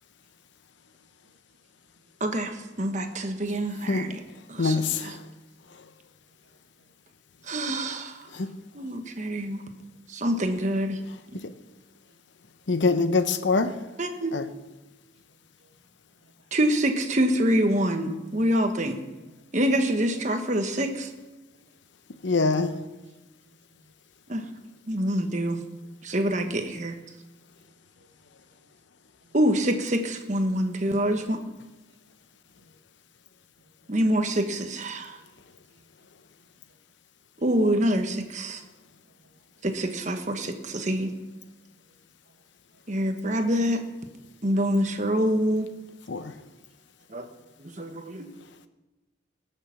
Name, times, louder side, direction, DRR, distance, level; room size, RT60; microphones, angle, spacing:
voice 1, 2.2-4.2 4.5-5.1 7.5-8.3 8.7-9.7 10.1-11.0 14.0-14.4 16.5-19.0 19.5-21.1 24.3-24.5 24.9-25.6 26.0-26.9 29.3-31.4 33.9-35.2 37.4-38.6 39.6-41.1 42.9-43.8 44.4-45.7 47.1-47.3 47.6-48.3, equal, 40° right, 6 dB, 1.2 m, -26 dB
voice 2, 4.6-5.2 8.3-8.5 12.7-13.8 14.3-14.5 22.2-22.7 46.1-46.3, left 3 dB, 65° left, 10 dB, 0.8 m, -24 dB
voice 3, 15.3-15.7 16.1-16.3 19.1-19.3 23.1-23.8 27.6-28.1 29.2-29.4 30.7-30.8 35.1-35.2 35.7-35.9 39.0-39.7 42.3-42.4 42.7-42.8 46.2-46.7 47.2-47.3 47.8-48.2, right 3 dB, 70° right, 2 dB, 2.0 m, -64 dB
19.0 x 6.7 x 5.9 m, 1.1 s
head